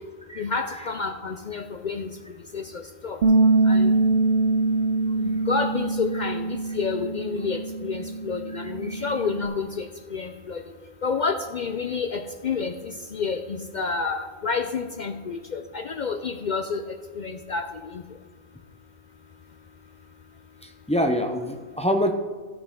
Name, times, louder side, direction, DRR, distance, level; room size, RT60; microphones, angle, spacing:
voice 1, 0.4-2.1 2.5-3.2 3.7-3.9 5.2-10.6 11.0-16.8 17.1-18.0, left 5 dB, 60° left, 6 dB, 0.5 m, -29 dB
Bass guitar, 3.2-9.5, right 3 dB, 55° right, 0.5 m, -23 dB
voice 2, 8.5-9.1 20.6-22.1, equal, 5° left, 4 dB, 0.5 m, -26 dB
14.5 x 6.8 x 3.8 m, 1.5 s
omnidirectional pair, 1.3 m